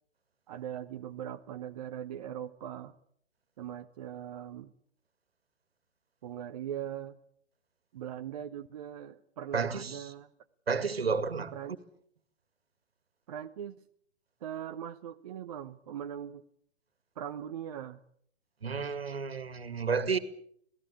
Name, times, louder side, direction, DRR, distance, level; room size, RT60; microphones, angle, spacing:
voice 1, 0.5-3.0 3.6-4.7 6.2-7.2 7.9-10.3 11.5-11.8 13.3-13.8 14.4-16.4 17.1-18.0, right 10 dB, 35° right, 1.0 m, -40 dB
voice 2, 9.5-10.1 10.7-11.5 18.6-20.2, right 5 dB, 65° right, 2.2 m, -31 dB
26.5 x 17.5 x 8.5 m
figure-of-eight pair, 125°, 33 cm